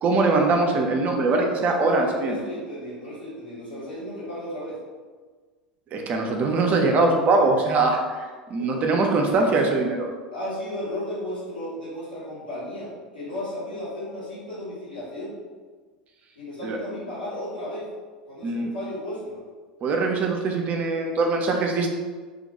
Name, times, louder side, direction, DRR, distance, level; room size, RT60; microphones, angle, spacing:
voice 1, 0.0-2.4 5.9-10.1 16.6-16.8 18.4-18.7 19.8-21.9, right 3 dB, 35° right, 2 dB, 0.4 m, -22 dB
voice 2, 1.3-4.8 8.6-8.8 9.2-9.8 10.3-15.3 16.3-17.9 18.3-19.4, left 1 dB, 85° left, -11 dB, 1.2 m, -34 dB
2.3 x 2.1 x 2.8 m, 1.5 s
figure-of-eight pair, 75°, 4 cm